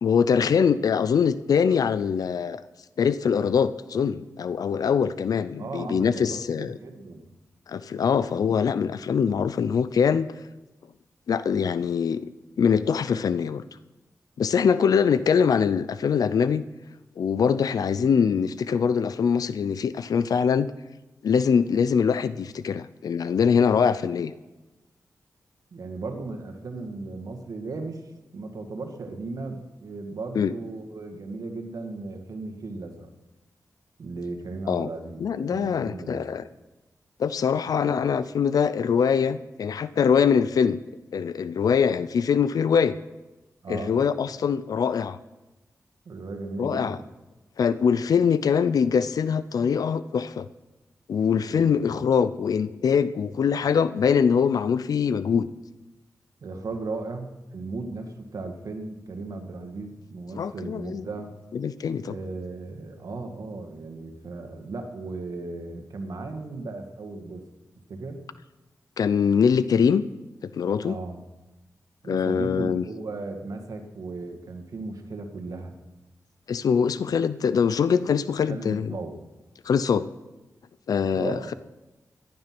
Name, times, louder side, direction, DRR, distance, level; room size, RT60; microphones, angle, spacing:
voice 1, 0.0-2.6 3.0-6.8 7.7-10.3 11.3-12.2 12.6-13.6 14.4-16.7 17.2-20.7 21.2-24.3 30.3-30.5 34.7-34.9 35.2-36.4 37.2-40.8 41.1-43.0 43.7-45.2 46.6-47.0 47.6-50.5 51.1-55.5 60.3-61.0 61.5-62.1 69.0-70.0 70.6-71.0 72.1-72.8 76.5-78.9 79.6-80.1 80.9-81.5, left 6 dB, 80° left, 15 dB, 0.5 m, -23 dB
voice 2, 5.6-7.3 25.7-28.0 28.3-33.1 34.0-36.3 37.8-37.9 43.6-44.1 46.1-47.0 51.5-51.9 56.4-61.3 62.0-67.4 67.9-68.2 70.8-71.2 72.0-75.8 78.5-79.2 81.1-81.5, right 3 dB, 70° right, 4 dB, 2.0 m, -36 dB
15.5 x 11.0 x 6.1 m, 1.1 s
wide cardioid pair, 80°, 6 cm